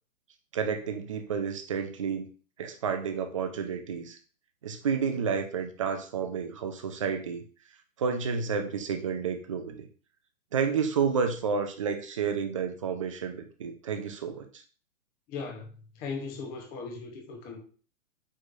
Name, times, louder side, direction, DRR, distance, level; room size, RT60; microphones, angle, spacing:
voice 1, 0.5-2.3 2.6-4.2 4.6-7.4 8.0-9.9 10.5-14.6, right 6 dB, 25° right, 0.3 m, -30 dB
voice 2, 15.3-15.7 15.9-17.6, left 4 dB, 20° left, 0.8 m, -38 dB
4.7 x 4.5 x 2.5 m
hypercardioid pair, 135°, 42 cm